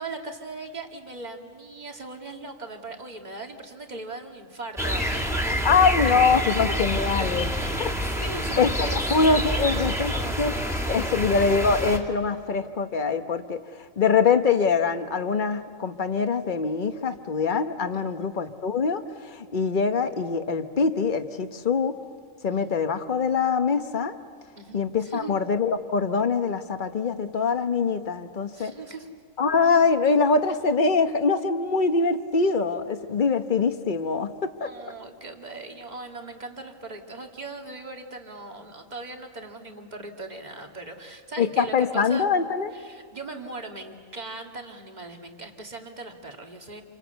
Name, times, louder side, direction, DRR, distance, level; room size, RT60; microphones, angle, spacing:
voice 1, 0.0-5.7 6.0-6.5 6.8-11.4 17.9-18.3 22.5-22.6 24.6-25.3 28.5-29.1 34.6-42.3 42.7-46.8, right 2 dB, 30° right, 3 dB, 2.2 m, -39 dB
sound 1, 4.8-12.0, equal, ahead, 2.4 m, -27 dB
voice 2, 5.6-7.5 7.8-7.9 8.6-10.1 10.4-10.5 10.9-13.6 14.0-19.0 19.3-22.0 22.4-24.1 24.7-28.7 29.4-34.7 41.4-42.7, left 5 dB, 40° left, 9 dB, 1.1 m, -23 dB
28.5 x 25.5 x 8.1 m, 2.2 s
omnidirectional pair, 1.4 m